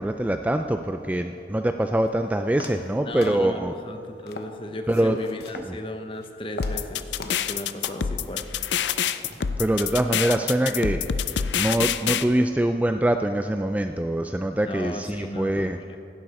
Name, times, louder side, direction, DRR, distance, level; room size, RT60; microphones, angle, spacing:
voice 1, 0.0-3.7 4.9-5.2 5.6-5.7 9.6-11.0 11.6-15.8, right 1 dB, 10° right, 6 dB, 0.3 m, -24 dB
sound 1, 2.1-2.2 2.6-3.0 3.2-3.8 4.3-4.6 4.9-5.7 6.1-6.3 6.6-6.9 7.2-7.5 7.8-8.1 8.5-8.6 9.2-9.9 10.2-10.6, left 3 dB, 65° left, 0.9 m, -40 dB
voice 2, 3.0-8.6 14.7-16.0, left 1 dB, 30° left, 6 dB, 0.9 m, -36 dB
sound 2, 6.6-12.2, left 8 dB, 90° left, 0.5 m, -26 dB
15.5 x 11.5 x 4.3 m, 2.5 s
head